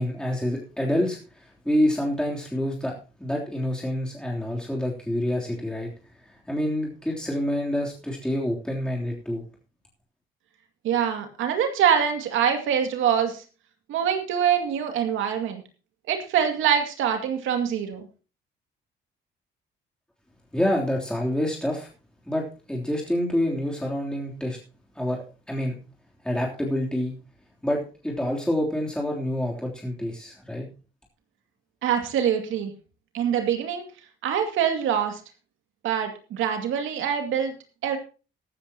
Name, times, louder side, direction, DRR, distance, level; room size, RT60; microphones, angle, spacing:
voice 1, 0.0-2.9 3.2-5.9 6.2-9.4 20.5-21.9 22.3-24.6 24.9-25.8 26.2-27.1 27.6-30.7, left 1 dB, 5° left, -2 dB, 3.3 m, -27 dB
voice 2, 10.8-13.4 13.9-15.6 16.1-18.1 31.8-32.7 33.1-33.8 34.2-35.2 35.8-37.5 37.8-38.0, right 8 dB, 85° right, 5 dB, 2.3 m, -24 dB
14.5 x 13.0 x 2.9 m, 0.33 s
cardioid pair, 90°, 20 cm